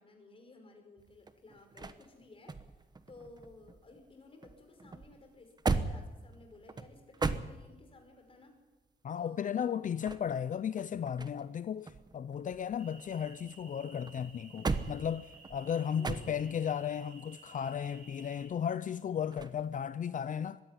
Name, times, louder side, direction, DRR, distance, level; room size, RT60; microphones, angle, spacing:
voice 1, 0.0-8.5 9.2-10.1 15.7-16.4, left 3 dB, 35° left, 5.3 m, -56 dB
sound 1, 1.0-4.1 4.4-8.0 9.8-11.6 11.9-13.6 14.1-16.7 19.3-19.6, right 3 dB, 25° right, 1.1 m, -38 dB
voice 2, 9.0-20.6, left 8 dB, 55° left, 0.6 m, -35 dB
sound 2, 12.8-18.5, right 3 dB, 65° right, 6.6 m, -56 dB
21.5 x 16.0 x 9.9 m
wide cardioid pair, 145°, 16 cm